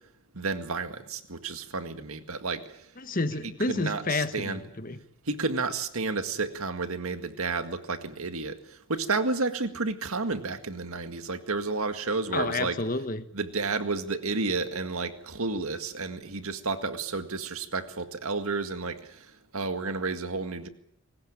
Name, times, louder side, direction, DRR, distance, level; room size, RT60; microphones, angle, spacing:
voice 1, 0.3-2.9 3.7-4.6 5.3-12.8 13.3-20.7, right 3 dB, 80° right, 9 dB, 2.0 m, -31 dB
voice 2, 3.0-5.0 12.3-13.3, left 2 dB, 40° left, 12 dB, 1.2 m, -30 dB
22.0 x 19.0 x 8.9 m, 0.70 s
head